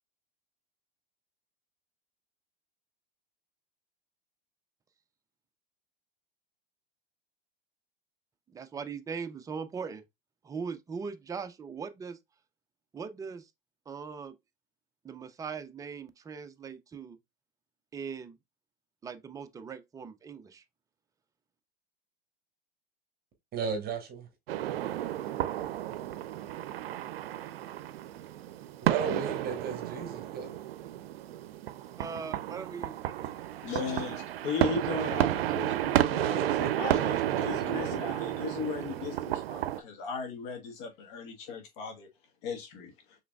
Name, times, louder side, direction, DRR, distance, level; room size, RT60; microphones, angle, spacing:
voice 1, 8.5-10.0 10.4-12.2 12.9-13.5 13.9-14.3 15.0-17.2 17.9-18.4 19.0-20.6 32.0-33.3, right 5 dB, 10° right, 0.4 m, -40 dB
voice 2, 23.5-24.3 28.8-30.6 36.1-37.7, right 6 dB, 30° right, 1.2 m, -36 dB
sound 1, 24.5-39.8, right 13 dB, 80° right, 0.5 m, -32 dB
voice 3, 33.6-42.1 42.4-42.9, left 5 dB, 55° left, 1.3 m, -37 dB
4.9 x 3.2 x 2.3 m
hypercardioid pair, 105°, 29 cm